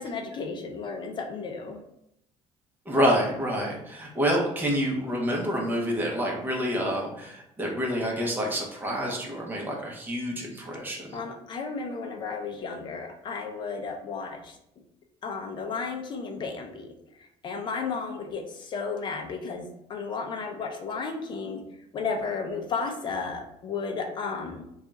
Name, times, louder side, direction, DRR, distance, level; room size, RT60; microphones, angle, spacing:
voice 1, 0.0-1.8 11.1-14.5 15.2-16.9 17.4-21.6 21.9-24.6, left 4 dB, 40° left, 4 dB, 0.5 m, -33 dB
voice 2, 2.9-11.2, equal, 15° right, -2 dB, 1.0 m, -28 dB
3.5 x 2.4 x 4.0 m, 0.79 s
cardioid pair, 135°, 12 cm